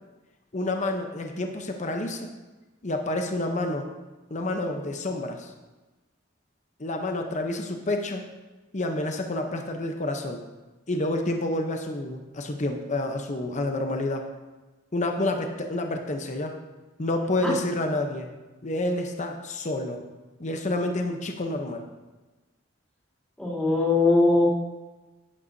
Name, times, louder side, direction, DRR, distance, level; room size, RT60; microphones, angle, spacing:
voice 1, 0.5-2.3 2.8-3.9 4.3-5.5 6.8-8.2 8.7-10.4 10.9-14.2 14.9-16.6 17.0-18.3 18.6-20.0 20.4-21.8, left 2 dB, 40° left, 4 dB, 0.8 m, -29 dB
voice 2, 23.4-24.6, left 2 dB, 5° left, -8 dB, 2.9 m, -21 dB
11.0 x 9.7 x 2.7 m, 1.2 s
head